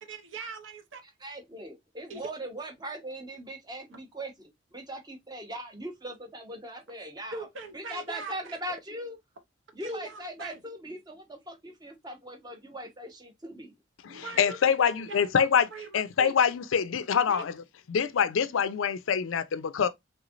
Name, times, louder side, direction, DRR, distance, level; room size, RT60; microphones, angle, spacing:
voice 1, 0.0-1.0 2.1-2.3 7.3-8.6 9.8-10.6 14.0-16.3 17.3-17.5, right 3 dB, 70° right, 0.8 m, -41 dB
voice 2, 1.2-7.5 7.7-9.2 9.7-13.7, right 1 dB, 20° right, 0.7 m, -40 dB
voice 3, 14.0-15.7 15.9-17.5 17.9-19.9, left 7 dB, 75° left, 0.4 m, -25 dB
3.4 x 3.0 x 2.4 m
head